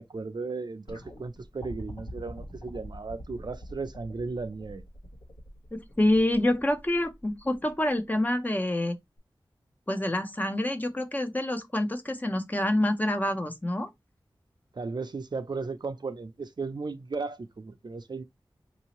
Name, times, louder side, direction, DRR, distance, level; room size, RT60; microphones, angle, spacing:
voice 1, 0.0-4.8 14.7-18.2, right 4 dB, 55° right, 0.5 m, -35 dB
sound 1, 0.9-8.0 9.2-9.3, right 1 dB, 55° left, 1.1 m, -45 dB
voice 2, 5.7-9.0 9.9-13.9, left 1 dB, 20° left, 0.6 m, -27 dB
4.0 x 2.7 x 2.9 m
wide cardioid pair, 65°, 9 cm